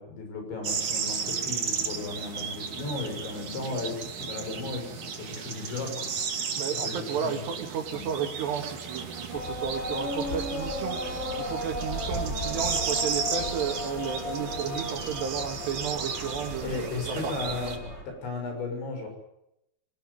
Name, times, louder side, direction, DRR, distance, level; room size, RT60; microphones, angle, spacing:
voice 1, 0.0-6.5 6.8-7.4 7.9-8.1 16.6-17.8 18.1-19.1, left 3 dB, 65° left, 4 dB, 8.8 m, -35 dB
sound 1, 0.6-17.8, right 6 dB, 45° right, 3.4 m, -34 dB
voice 2, 6.6-17.4, right 7 dB, 65° right, 5 dB, 3.9 m, -33 dB
sound 2, 9.3-18.0, left 1 dB, 10° left, 7.9 m, -35 dB
24.0 x 19.0 x 9.7 m, 0.82 s
omnidirectional pair, 5.6 m